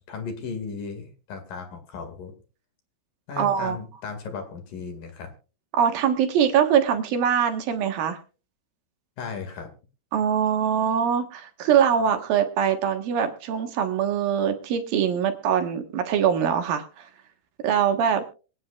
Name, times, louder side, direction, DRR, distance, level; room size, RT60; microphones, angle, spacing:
voice 1, 0.1-2.3 3.3-5.3 9.2-9.7, left 5 dB, 60° left, 5 dB, 3.4 m, -35 dB
voice 2, 3.4-3.8 5.8-8.2 10.1-17.1 17.6-18.2, right 8 dB, 65° right, 6 dB, 2.8 m, -23 dB
25.0 x 9.4 x 2.4 m, 0.34 s
omnidirectional pair, 4.9 m